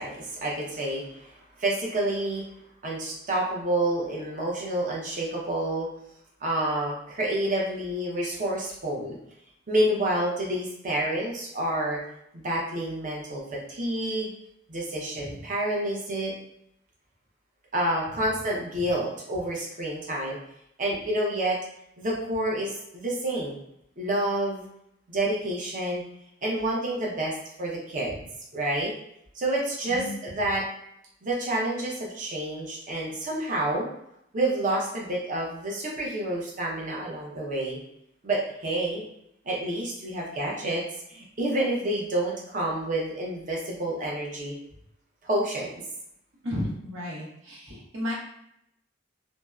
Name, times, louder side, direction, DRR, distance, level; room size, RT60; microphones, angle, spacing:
voice 1, 0.0-2.5 2.8-5.9 6.4-9.2 9.7-12.0 12.3-14.3 14.7-16.3 17.7-20.4 20.8-21.6 22.0-23.6 24.0-24.6 25.1-26.0 26.4-28.2 28.5-28.9 29.3-30.7 31.2-33.9 34.3-37.8 38.2-39.0 39.4-40.8 41.1-44.6 45.2-45.8, right 1 dB, 40° right, -3 dB, 0.6 m, -28 dB
voice 2, 46.4-48.1, left 1 dB, 85° right, -6 dB, 0.9 m, -33 dB
2.7 x 2.0 x 2.3 m, 0.76 s
head